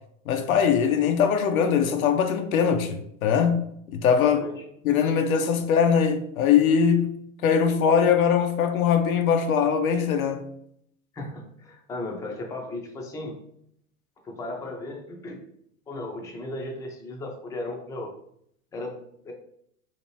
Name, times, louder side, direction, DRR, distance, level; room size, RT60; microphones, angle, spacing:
voice 1, 0.3-4.5 4.8-7.2 7.4-10.4, left 7 dB, 80° left, 0.6 m, -21 dB
voice 2, 11.1-13.3 14.2-15.4 15.9-18.1 18.7-19.3, left 2 dB, 10° left, 0.4 m, -36 dB
2.8 x 2.5 x 3.0 m
hypercardioid pair, 90°, 42 cm